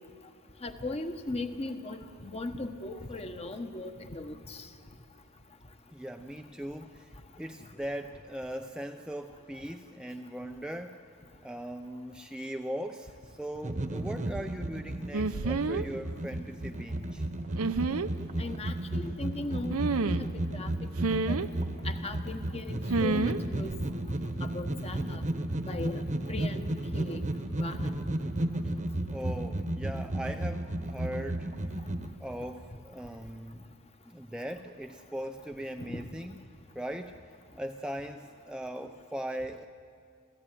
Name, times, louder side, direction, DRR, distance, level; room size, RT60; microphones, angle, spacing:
voice 1, 0.6-4.7 18.4-19.8 20.0-20.3 20.5-20.7 21.3-21.5 21.8-23.7 24.4-25.2 25.7-26.0 26.3-27.2 27.6-27.9 35.9-36.1, left 2 dB, 30° left, 7 dB, 1.3 m, -38 dB
voice 2, 5.9-11.0 11.4-17.2 29.1-31.5 32.2-33.6 34.1-36.4 36.7-37.2 37.6-39.7, right 1 dB, 5° right, 5 dB, 0.5 m, -39 dB
sound 1, 13.6-32.1, right 1 dB, 35° right, 1.1 m, -33 dB
sound 2, 15.1-15.9 17.6-18.1 19.7-20.3 21.0-21.5 22.9-23.4 23.6-23.9, right 3 dB, 80° right, 0.7 m, -29 dB
28.0 x 15.0 x 9.2 m, 2.4 s
head